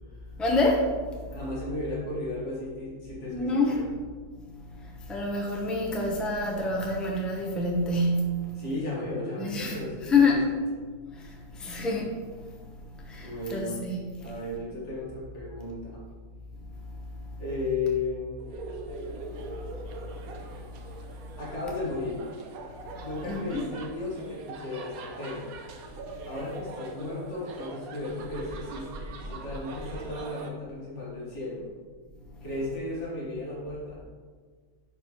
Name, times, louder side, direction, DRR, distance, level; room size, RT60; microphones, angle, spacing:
voice 1, 0.4-0.9 3.3-3.9 4.8-8.5 9.4-10.4 11.1-12.3 13.1-14.1 22.9-23.0 23.3-23.6, left 2 dB, ahead, -2 dB, 0.7 m, -27 dB
voice 2, 1.3-3.8 8.6-10.6 13.1-13.8 14.2-16.0 17.4-18.7 21.4-22.2 23.0-25.5 26.3-31.7 32.4-34.1, left 2 dB, 55° left, -6 dB, 2.1 m, -35 dB
sound 1, 18.4-30.5, right 3 dB, 85° right, 1.2 m, -42 dB
11.0 x 4.1 x 3.1 m, 1.5 s
omnidirectional pair, 1.5 m